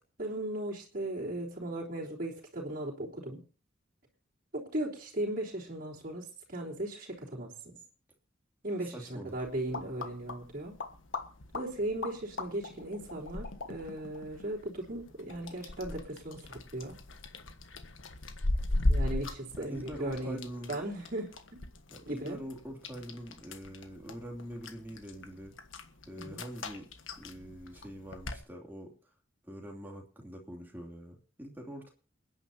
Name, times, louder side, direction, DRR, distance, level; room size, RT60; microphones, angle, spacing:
voice 1, 0.2-3.4 4.5-7.8 8.6-10.8 11.5-17.0 18.8-21.6 22.1-22.4 26.2-26.5, right 1 dB, 45° right, -4 dB, 3.7 m, -37 dB
voice 2, 8.9-9.3 19.7-20.7 21.9-25.6 26.1-26.9 27.2-29.1 29.4-31.9, equal, 10° right, 0 dB, 2.9 m, -44 dB
sound 1, 9.3-28.4, left 2 dB, 85° left, 1.5 m, -38 dB
28.5 x 10.0 x 2.8 m, 0.35 s
head